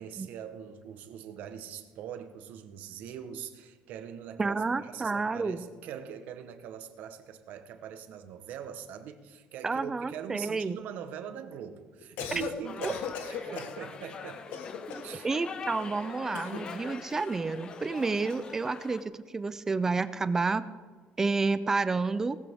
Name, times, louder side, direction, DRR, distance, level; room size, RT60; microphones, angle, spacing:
voice 1, 0.0-14.5 15.0-15.3, right 8 dB, 60° right, 9 dB, 1.1 m, -42 dB
voice 2, 4.4-5.6 9.6-10.8 12.8-12.9 14.9-20.6 21.2-22.4, right 4 dB, 15° right, 13 dB, 0.4 m, -30 dB
Cough, 12.0-12.5 12.8-13.8 14.5-15.2 16.3-16.7, left 7 dB, 75° left, 1.4 m, -37 dB
sound 1, 12.6-19.0, left 6 dB, 30° left, 0.7 m, -43 dB
18.0 x 14.0 x 3.6 m, 1.4 s
cardioid pair, 180°, 3 cm